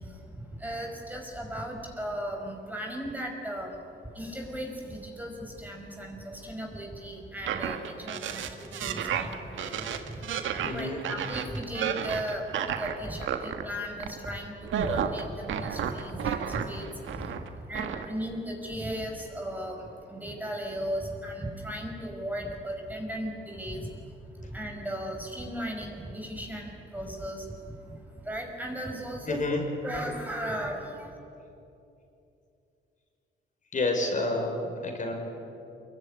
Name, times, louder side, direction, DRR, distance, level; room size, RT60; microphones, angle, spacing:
voice 1, 0.6-3.7 4.2-5.3 5.6-10.0 10.7-12.4 12.8-14.5 14.8-16.9 17.7-19.8 20.1-23.8 24.5-27.5 28.3-29.4 29.8-31.1, equal, 10° right, 2 dB, 5.2 m, -36 dB
sound 1, 7.4-13.6 14.0-14.3 14.6-17.5 17.7-18.0, right 8 dB, 75° right, 1.8 m, -32 dB
voice 2, 10.6-11.0 29.3-29.6 33.7-35.1, left 2 dB, 40° left, 2 dB, 5.7 m, -29 dB
24.5 x 22.5 x 9.9 m, 2.8 s
cardioid pair, 90°, 20 cm